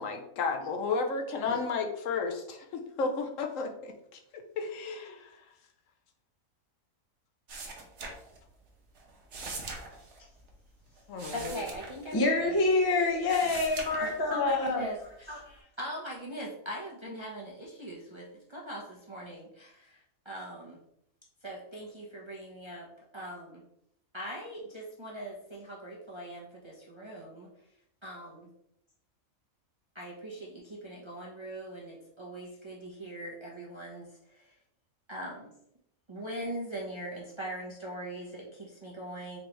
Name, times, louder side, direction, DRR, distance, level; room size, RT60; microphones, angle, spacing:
voice 1, 0.0-5.3 11.1-11.6, left 4 dB, 70° left, 5 dB, 1.0 m, -33 dB
sound 1, 7.5-8.7 8.9-12.7 13.1-14.5 15.0-15.6, right 3 dB, 60° right, 1.1 m, -43 dB
voice 2, 11.3-12.6 14.0-20.8 21.4-22.9 23.1-23.6 24.1-27.5 28.0-28.5 29.9-34.1 34.3-34.5 35.1-35.5 36.1-39.4, right 1 dB, 30° right, -4 dB, 0.5 m, -41 dB
voice 3, 12.1-14.9, left 3 dB, 30° left, 0 dB, 0.4 m, -26 dB
4.3 x 3.2 x 3.0 m, 0.75 s
omnidirectional pair, 1.4 m